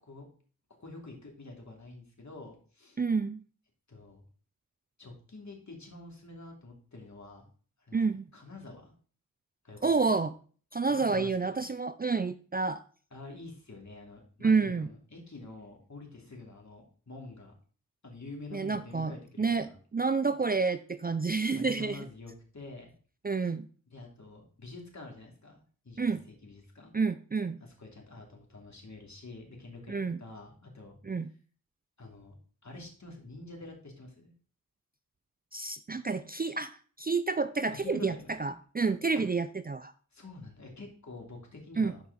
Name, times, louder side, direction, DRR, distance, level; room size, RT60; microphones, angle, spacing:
voice 1, 0.8-3.0 3.9-4.2 5.0-7.5 7.8-8.9 9.6-10.3 10.9-11.6 13.1-17.5 18.0-19.8 21.6-22.9 23.9-26.9 27.6-31.0 32.0-32.3 32.6-34.3 37.8-38.6 40.1-42.0, left 2 dB, 55° left, 1 dB, 2.9 m, -47 dB
voice 2, 3.0-3.4 7.9-8.2 9.8-10.3 10.7-12.8 14.4-14.9 18.5-22.1 23.2-23.7 26.0-26.2 26.9-27.6 29.9-30.2 31.0-31.3 35.5-39.9 41.8-41.9, right 4 dB, 30° right, 12 dB, 0.4 m, -29 dB
11.5 x 4.8 x 4.1 m, 0.41 s
wide cardioid pair, 65°, 34 cm